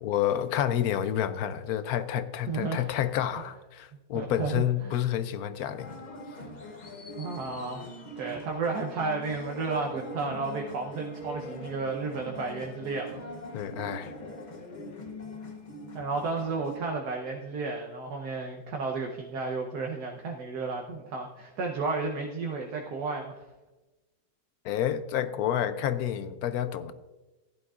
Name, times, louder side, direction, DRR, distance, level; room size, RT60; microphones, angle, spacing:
voice 1, 0.0-6.0 13.5-14.1 24.6-26.9, left 10 dB, 70° left, 0.9 m, -29 dB
voice 2, 2.5-2.8 4.1-5.0 6.5-6.8 7.2-7.9 8.1-13.2 15.9-23.4, right 4 dB, 65° right, 1.5 m, -33 dB
sound 1, 5.8-16.8, equal, 40° left, 0.6 m, -42 dB
15.5 x 11.0 x 2.4 m
omnidirectional pair, 1.9 m